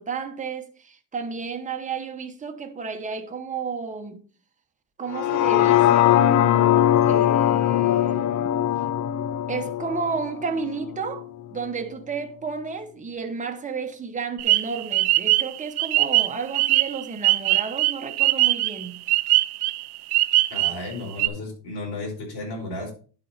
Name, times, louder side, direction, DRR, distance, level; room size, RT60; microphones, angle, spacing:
voice 1, 0.0-4.2 5.0-8.5 9.5-11.2 11.5-19.0, right 5 dB, 15° right, 1.0 m, -32 dB
sound 1, 5.1-11.2 11.7-11.8, left 12 dB, 40° left, 0.5 m, -21 dB
sound 2, 14.4-20.9 21.2-21.3, right 17 dB, 55° right, 0.5 m, -21 dB
voice 2, 20.5-22.9, left 2 dB, 55° left, 4.5 m, -33 dB
11.0 x 4.2 x 4.2 m
cardioid pair, 120°, 47 cm